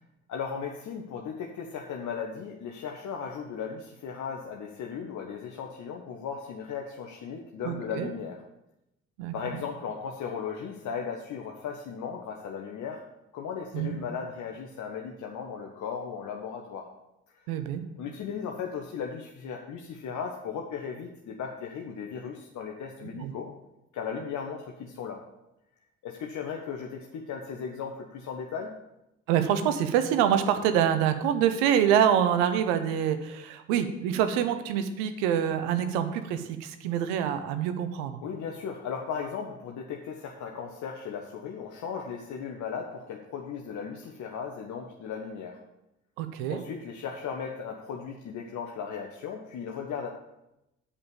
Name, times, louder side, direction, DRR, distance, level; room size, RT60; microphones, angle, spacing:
voice 1, 0.3-8.4 9.3-13.0 13.3-16.9 17.3-17.4 18.0-23.5 23.9-25.2 26.0-28.7 38.2-45.6 46.5-50.1, left 6 dB, 60° left, 1 dB, 1.0 m, -36 dB
voice 2, 7.6-8.1 9.2-9.3 13.7-14.0 17.5-17.8 23.2-23.3 29.3-38.2 46.2-46.6, right 9 dB, 80° right, 9 dB, 0.8 m, -26 dB
8.4 x 5.4 x 7.1 m, 0.90 s
hypercardioid pair, 45°, 33 cm